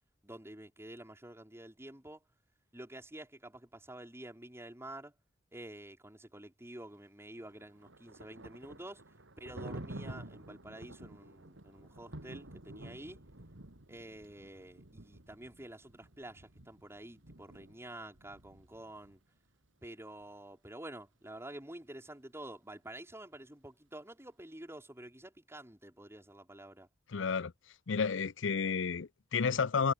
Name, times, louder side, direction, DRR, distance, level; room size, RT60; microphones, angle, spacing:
voice 1, 0.2-2.2 2.7-5.1 5.5-9.0 9.4-13.2 13.9-19.2 19.8-26.9, right 1 dB, 15° right, 3.0 m, -49 dB
Thunder, 7.4-19.2, right 1 dB, 85° right, 2.9 m, -50 dB
voice 2, 27.1-27.5 27.9-29.9, left 5 dB, 80° left, 0.6 m, -31 dB
head